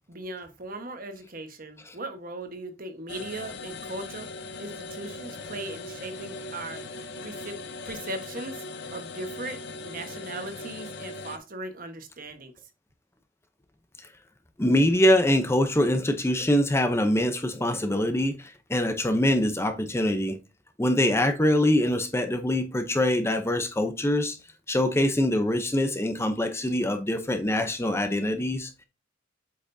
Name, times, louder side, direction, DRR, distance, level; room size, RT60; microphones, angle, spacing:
voice 1, 0.1-12.5, right 2 dB, 45° right, 1.3 m, -39 dB
sound 1, 3.1-11.4, left 3 dB, 60° left, 0.7 m, -39 dB
voice 2, 14.6-20.4 20.8-24.4 24.7-28.8, left 1 dB, 15° left, 0.7 m, -24 dB
8.3 x 5.7 x 2.7 m
head